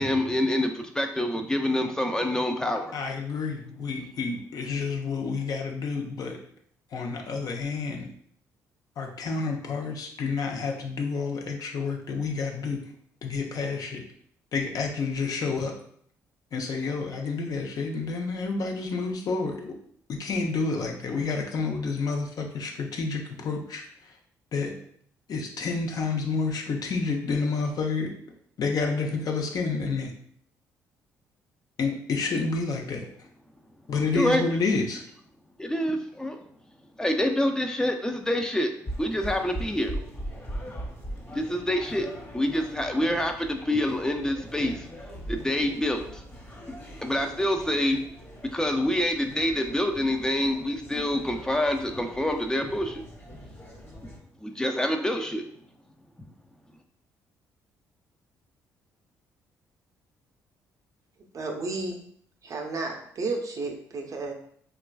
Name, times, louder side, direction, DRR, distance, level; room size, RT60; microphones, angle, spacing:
voice 1, 0.0-2.9 34.1-34.4 35.6-36.4 37.0-38.7 39.0-40.0 41.3-42.1 42.3-44.9 45.3-46.2 47.0-48.0 48.4-53.0 54.4-55.4, left 1 dB, 10° left, 5 dB, 0.4 m, -26 dB
voice 2, 2.9-6.4 6.9-8.1 9.0-12.8 13.2-14.0 14.5-15.7 16.5-19.7 20.1-23.8 24.5-24.7 25.3-28.1 28.6-30.1 31.8-33.1 33.9-35.0, left 4 dB, 55° left, 1 dB, 0.6 m, -29 dB
sound 1, 38.8-54.2, right 1 dB, 30° left, 1.1 m, -41 dB
voice 3, 61.3-62.0 62.4-64.3, right 3 dB, 45° right, 2 dB, 0.6 m, -32 dB
3.1 x 2.3 x 2.3 m, 0.62 s
supercardioid pair, 60°, 8 cm